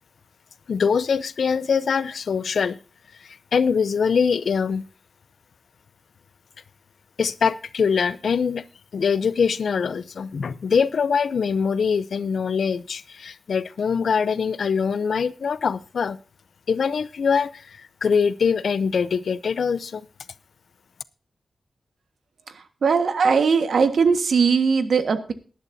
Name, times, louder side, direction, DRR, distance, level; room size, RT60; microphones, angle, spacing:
voice 1, 0.7-2.8 3.2-4.8 7.2-8.6 8.9-16.2 16.7-20.0, left 6 dB, 70° left, 0.6 m, -23 dB
voice 2, 22.8-25.3, right 5 dB, 70° right, 1.5 m, -19 dB
19.0 x 11.0 x 2.7 m
wide cardioid pair, 180°, 0 cm